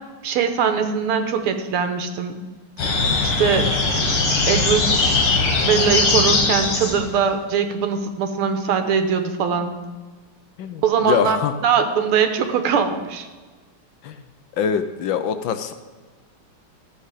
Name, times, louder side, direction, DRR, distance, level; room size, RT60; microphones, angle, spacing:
voice 1, 0.2-2.4 3.2-3.7 4.5-5.2 5.6-9.7 10.8-11.4 11.6-13.3, right 6 dB, 90° right, 7 dB, 1.9 m, -21 dB
sound 1, 2.8-7.2, left 3 dB, 85° left, 2.5 m, -20 dB
voice 2, 10.6-11.5 14.0-14.2 14.6-15.7, left 7 dB, 70° left, 9 dB, 1.3 m, -24 dB
13.5 x 7.5 x 4.9 m, 1.4 s
omnidirectional pair, 2.4 m